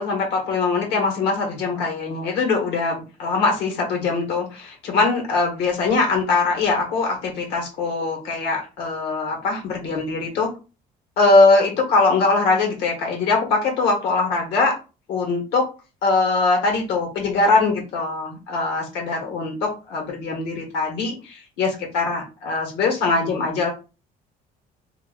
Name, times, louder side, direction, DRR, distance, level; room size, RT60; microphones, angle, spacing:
voice 1, 0.0-10.5 11.2-14.7 15.1-15.6 16.0-23.7, left 3 dB, 85° left, 1 dB, 1.6 m, -22 dB
2.9 x 2.5 x 3.9 m, 0.32 s
cardioid pair, 110°, 17 cm